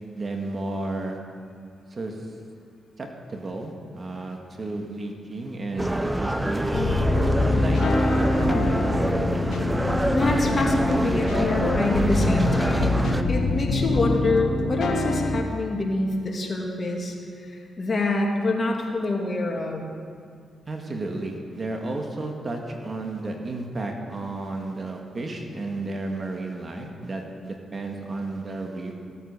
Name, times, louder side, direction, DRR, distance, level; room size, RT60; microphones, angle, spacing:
voice 1, 0.2-1.2 1.9-2.1 3.0-6.7 7.6-7.8 8.2-9.0 20.7-29.1, right 2 dB, 45° right, 2 dB, 2.0 m, -32 dB
sound 1, 5.8-13.2, right 1 dB, 15° right, 0.8 m, -26 dB
sound 2, 6.7-15.4, left 2 dB, 75° left, 1.4 m, -25 dB
voice 2, 10.1-17.2 17.5-19.8, left 2 dB, 45° left, 0 dB, 2.5 m, -26 dB
16.0 x 8.5 x 6.9 m, 2.2 s
supercardioid pair, 55°, 0 cm